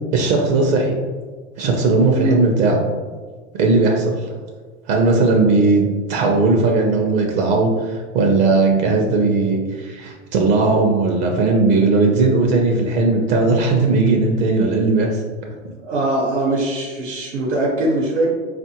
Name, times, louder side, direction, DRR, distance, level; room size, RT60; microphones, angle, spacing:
voice 1, 0.1-0.9 1.6-2.8 3.5-4.3 4.9-15.2 15.6-15.7, right 3 dB, 50° right, 1 dB, 0.6 m, -17 dB
voice 2, 15.8-18.3, right 2 dB, 85° right, -5 dB, 1.0 m, -21 dB
3.7 x 2.5 x 2.8 m, 1.5 s
hypercardioid pair, 105°, 36 cm